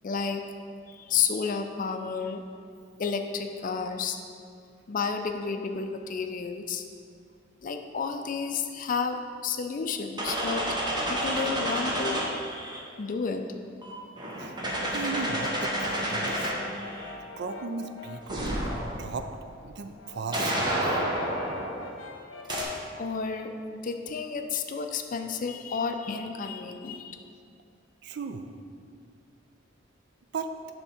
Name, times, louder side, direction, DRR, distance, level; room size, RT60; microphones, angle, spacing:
voice 1, 0.0-0.4 0.9-2.4 3.0-4.2 4.9-6.8 7.6-10.6 11.2-12.2 13.0-13.4 23.0-27.2, left 5 dB, 45° left, 6 dB, 0.4 m, -31 dB
sound 1, 10.2-12.8 13.8-17.1 18.3-19.1 20.3-21.8 22.4-22.6, equal, 25° right, 0.9 m, -30 dB
voice 2, 14.9-16.5 17.4-19.3 19.6-20.8 28.0-28.5 30.3-30.5, right 4 dB, 60° right, 8 dB, 0.4 m, -36 dB
Brass instrument, 15.5-18.9 19.3-22.9, left 4 dB, 90° left, 0.7 m, -44 dB
6.8 x 3.5 x 5.7 m, 2.2 s
head